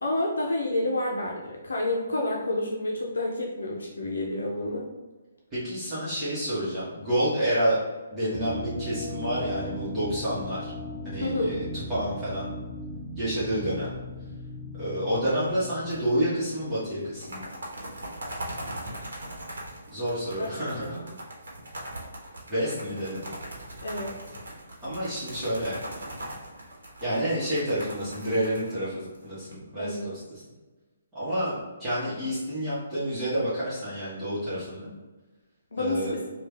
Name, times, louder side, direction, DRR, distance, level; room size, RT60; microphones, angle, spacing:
voice 1, 0.0-4.9 11.2-11.6 18.9-19.3 20.4-20.5 20.8-21.0 23.8-24.2 29.8-30.1 35.7-36.2, left 1 dB, 75° left, -1 dB, 0.6 m, -29 dB
voice 2, 5.5-7.8 8.1-10.7 11.0-12.5 13.2-13.9 14.7-17.5 19.9-21.0 22.5-23.3 24.8-25.8 27.0-30.4 31.1-34.9 35.8-36.2, equal, 15° right, -13 dB, 1.3 m, -29 dB
sound 1, 8.3-17.0, left 1 dB, 15° left, 0.7 m, -38 dB
sound 2, 15.9-16.3 16.6-16.7 17.0-29.5, right 1 dB, 70° right, 1.1 m, -40 dB
3.3 x 2.4 x 3.3 m, 1.2 s
figure-of-eight pair, 140°, 0 cm